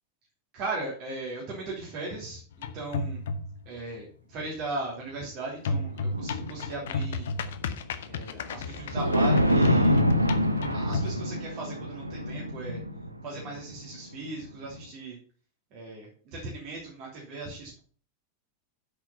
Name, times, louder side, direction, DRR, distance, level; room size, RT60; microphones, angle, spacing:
voice 1, 0.5-3.2 3.6-7.3 8.1-10.1 10.7-12.8 13.2-15.2 15.7-17.8, right 2 dB, 40° right, -3 dB, 3.3 m, -38 dB
sound 1, 2.5-3.7 5.7-11.2, left 3 dB, 60° left, 0.9 m, -32 dB
sound 2, 5.7-6.9 8.5-8.6 8.8-14.4 14.7-14.8, equal, 85° right, 0.9 m, -26 dB
8.6 x 6.6 x 5.6 m, 0.42 s
figure-of-eight pair, 90°, 0 cm